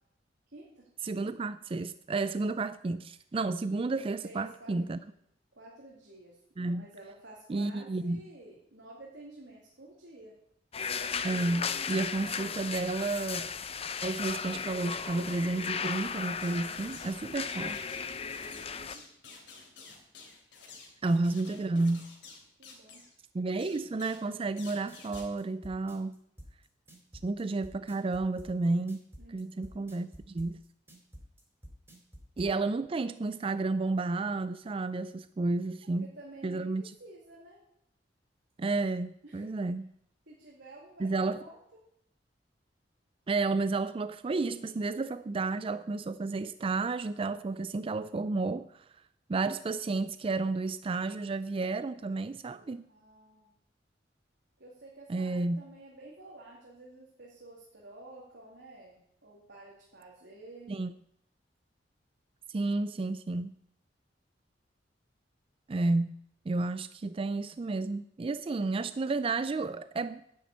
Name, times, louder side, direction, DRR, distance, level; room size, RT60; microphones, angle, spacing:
voice 1, 0.5-0.9 4.2-4.8 5.0-5.2 5.5-10.3 18.3-19.0 22.6-23.0 29.2-29.9 36.0-37.6 39.2-39.5 40.3-41.6 52.9-53.5 54.6-60.7, right 2 dB, 80° right, 2.6 m, -51 dB
voice 2, 1.0-5.0 6.6-6.9 7.5-8.2 11.2-13.5 14.0-17.8 21.0-22.1 23.3-26.2 27.2-29.0 29.3-30.6 32.4-36.1 36.4-36.8 38.6-39.9 41.0-41.4 43.3-48.9 49.3-52.9 55.1-55.6 60.7-60.9 62.5-63.5 65.7-66.1 66.5-70.2, right 3 dB, 30° right, 0.4 m, -31 dB
sound 1, 10.7-19.0, left 6 dB, 35° left, 0.7 m, -36 dB
sound 2, 16.4-17.2 17.4-23.1 23.6-24.3 24.6-25.3, left 4 dB, 75° left, 3.0 m, -51 dB
sound 3, 24.6-32.5, equal, 15° right, 3.2 m, -49 dB
10.0 x 7.7 x 8.3 m
head